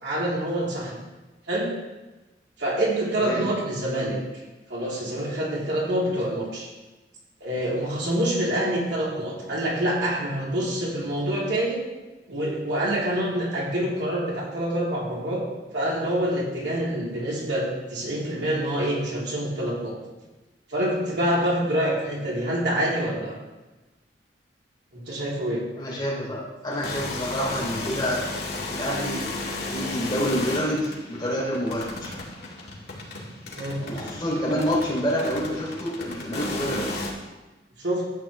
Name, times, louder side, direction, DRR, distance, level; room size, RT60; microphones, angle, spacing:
voice 1, 0.0-1.0 1.5-1.7 2.6-4.2 4.7-6.7 7.4-11.8 12.3-15.4 15.7-20.0 20.7-23.4 24.9-25.6 33.6-33.8 37.8-38.0, right 1 dB, 85° right, -5 dB, 3.2 m, -26 dB
voice 2, 25.8-28.4 28.7-32.2 33.8-37.0, equal, 25° left, -6 dB, 3.3 m, -28 dB
sound 1, 26.7-37.1, left 2 dB, 65° left, 2.2 m, -34 dB
12.5 x 8.5 x 3.4 m, 1.1 s
head